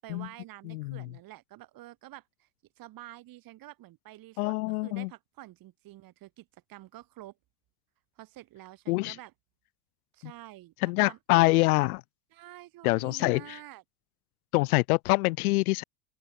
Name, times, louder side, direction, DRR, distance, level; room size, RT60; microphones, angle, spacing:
voice 1, 0.0-2.5 2.8-7.4 8.2-9.3 10.1-11.2 12.3-13.8, right 16 dB, 45° right, 6.0 m, -48 dB
voice 2, 0.7-1.1 4.4-5.1 8.9-9.2 10.8-12.0 12.8-13.6 14.5-15.8, left 22 dB, 70° left, 0.7 m, -25 dB
open air
hypercardioid pair, 95°, 46 cm